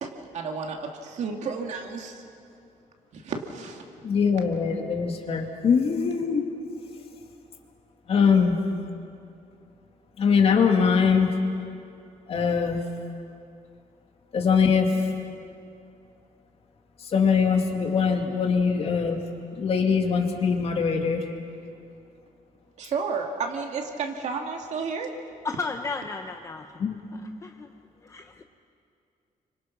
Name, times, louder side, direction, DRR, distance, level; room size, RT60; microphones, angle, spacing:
voice 1, 0.0-2.2 3.1-3.9 22.8-25.1, right 5 dB, 55° right, 2.3 m, -32 dB
voice 2, 4.0-6.4 8.1-8.6 10.2-11.3 12.3-12.8 14.3-15.1 17.0-19.2 19.5-21.3 26.8-27.0, left 6 dB, 45° left, 2.2 m, -22 dB
voice 3, 25.4-26.8 27.2-27.7 28.0-28.4, left 4 dB, 20° left, 0.6 m, -34 dB
30.0 x 25.0 x 6.0 m
cardioid pair, 175°, 14 cm